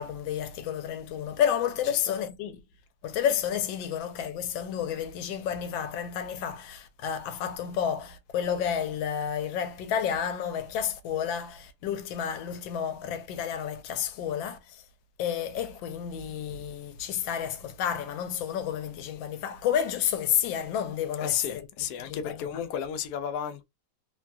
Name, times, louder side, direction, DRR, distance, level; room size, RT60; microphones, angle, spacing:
voice 1, 0.0-2.6 3.0-14.8 15.2-21.7 22.0-22.6, left 9 dB, 85° left, 1.3 m, -30 dB
voice 2, 21.2-23.7, left 9 dB, 70° left, 1.0 m, -33 dB
3.2 x 2.3 x 2.5 m
omnidirectional pair, 2.0 m